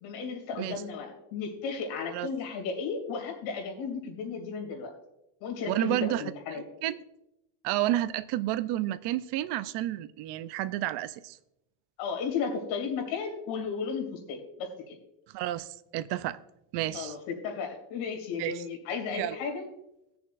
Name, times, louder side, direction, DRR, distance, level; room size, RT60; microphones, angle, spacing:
voice 1, 0.0-4.9 5.4-6.6 12.0-15.0 16.9-19.7, left 5 dB, 85° left, 3 dB, 2.8 m, -34 dB
voice 2, 5.7-6.2 6.5-7.0 7.6-11.4 15.3-16.4 16.7-17.2 18.4-18.6 19.1-19.4, right 14 dB, 65° right, 13 dB, 0.6 m, -31 dB
19.5 x 6.9 x 2.5 m, 0.85 s
cardioid pair, 130°, 44 cm